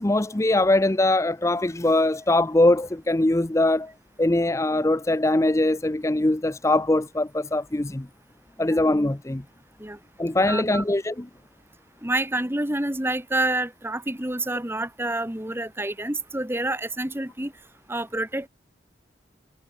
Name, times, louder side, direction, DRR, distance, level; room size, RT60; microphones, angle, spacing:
voice 1, 0.0-3.9 4.2-8.1 8.6-9.4 10.2-11.3, left 2 dB, 15° left, 0.6 m, -22 dB
voice 2, 10.5-10.8 12.0-17.5 17.9-18.5, right 1 dB, 10° right, 1.8 m, -28 dB
head